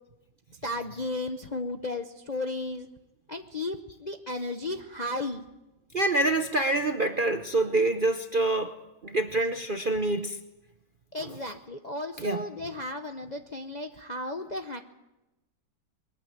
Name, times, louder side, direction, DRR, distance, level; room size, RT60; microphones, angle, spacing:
voice 1, 0.6-2.9 3.3-5.5 11.1-14.8, left 2 dB, 35° left, 5 dB, 0.7 m, -34 dB
voice 2, 5.9-8.7 9.0-10.4 11.2-11.4 12.2-12.4, right 2 dB, 40° right, 7 dB, 0.7 m, -26 dB
21.5 x 14.5 x 9.3 m, 0.99 s
omnidirectional pair, 2.0 m